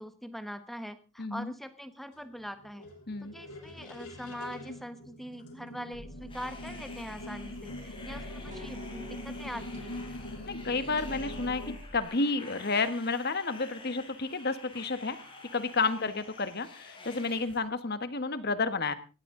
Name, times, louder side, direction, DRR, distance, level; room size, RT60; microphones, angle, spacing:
voice 1, 0.0-2.9 3.2-10.0 16.0-16.1, equal, ahead, 10 dB, 1.2 m, -42 dB
voice 2, 1.2-1.5 3.1-3.3 10.5-11.6 11.9-15.2 15.5-18.9, left 3 dB, 45° left, 12 dB, 1.3 m, -31 dB
sound 1, 2.1-11.8, left 1 dB, 80° left, 6.0 m, -44 dB
sound 2, 5.9-12.0, equal, 35° right, 3.9 m, -46 dB
sound 3, 6.3-17.6, left 3 dB, 25° left, 4.2 m, -49 dB
19.0 x 14.5 x 3.8 m, 0.33 s
head